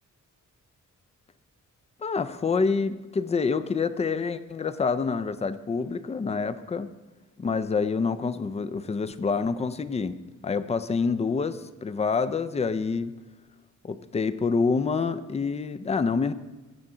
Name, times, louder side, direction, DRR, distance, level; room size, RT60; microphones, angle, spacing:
voice 1, 2.0-6.9 7.4-13.1 13.8-16.3, left 5 dB, 20° left, 12 dB, 0.3 m, -27 dB
15.0 x 5.6 x 3.7 m, 1.2 s
wide cardioid pair, 140°, 31 cm